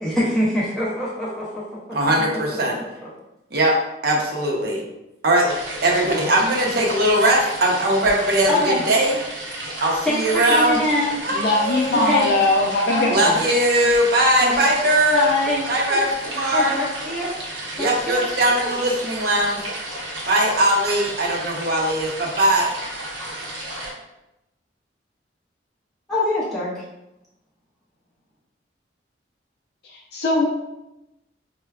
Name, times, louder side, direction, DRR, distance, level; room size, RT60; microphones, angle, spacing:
voice 1, 0.0-1.6 2.5-3.1 6.1-6.3 8.5-8.8 10.0-11.2 11.9-12.3 12.9-13.2 14.4-14.6 15.1-15.6 15.9-16.0 16.3-17.3 17.8-18.4 26.1-26.8, left 1 dB, 5° left, -8 dB, 0.5 m, -24 dB
voice 2, 1.9-2.8 3.5-3.8 4.0-4.8 5.2-5.5 5.8-9.1 9.8-10.8 11.2-12.3 13.1-15.2 15.7-16.7 17.8-19.7 20.3-22.6, right 1 dB, 55° right, -1 dB, 0.7 m, -20 dB
sound 1, 5.5-23.9, right 1 dB, 75° right, 0.8 m, -33 dB
voice 3, 11.3-13.4 29.9-30.5, left 2 dB, 55° left, -2 dB, 0.5 m, -20 dB
4.5 x 2.1 x 2.3 m, 0.92 s
head